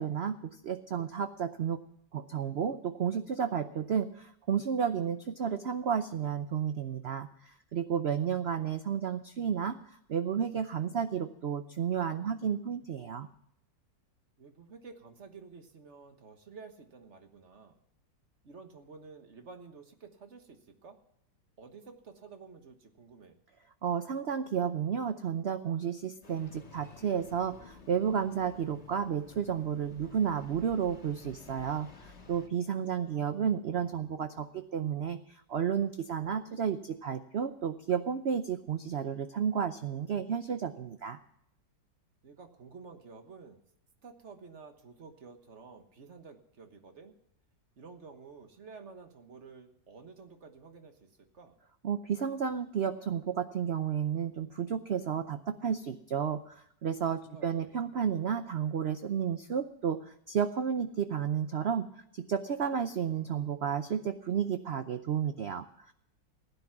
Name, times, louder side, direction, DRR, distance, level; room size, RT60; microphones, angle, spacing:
voice 1, 0.0-1.8 2.1-13.3 23.8-41.2 51.8-61.9 62.3-65.9, right 7 dB, 80° right, 9 dB, 0.5 m, -32 dB
voice 2, 14.4-17.8 18.4-21.0 21.6-23.4 32.8-33.5 42.2-43.6 44.0-47.1 47.8-51.1 51.3-51.6 57.0-57.7, right 4 dB, 40° right, 7 dB, 1.5 m, -51 dB
Engine starting, 26.2-32.5, left 3 dB, 40° left, 1.8 m, -53 dB
16.0 x 10.0 x 5.9 m, 0.74 s
omnidirectional pair, 1.9 m